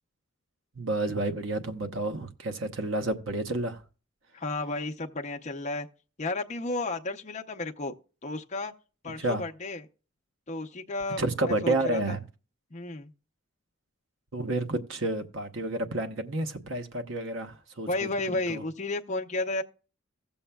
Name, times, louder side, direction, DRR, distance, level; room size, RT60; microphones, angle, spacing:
voice 1, 0.7-3.8 9.2-9.4 11.2-12.2 14.3-17.9 18.3-18.6, right 2 dB, 65° right, 1.0 m, -30 dB
voice 2, 4.3-5.9 6.2-7.9 8.2-8.7 9.0-9.9 10.5-12.2 12.7-13.1 17.9-19.6, left 2 dB, 35° left, 0.7 m, -32 dB
16.0 x 7.1 x 2.2 m
head